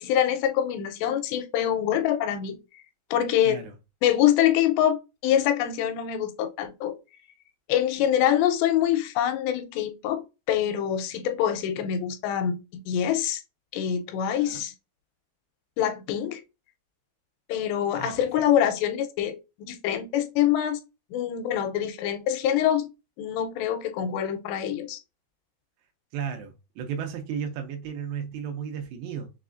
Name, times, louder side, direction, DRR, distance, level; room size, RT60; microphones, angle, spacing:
voice 1, 0.0-2.6 3.1-3.6 4.0-6.9 7.7-13.4 13.7-14.7 15.8-16.4 17.5-20.8 21.1-22.9 23.2-25.0, left 10 dB, 85° left, 2.8 m, -25 dB
voice 2, 14.3-14.6 18.0-18.1 26.1-29.3, right 7 dB, 85° right, 2.9 m, -34 dB
6.5 x 2.4 x 2.4 m
omnidirectional pair, 4.8 m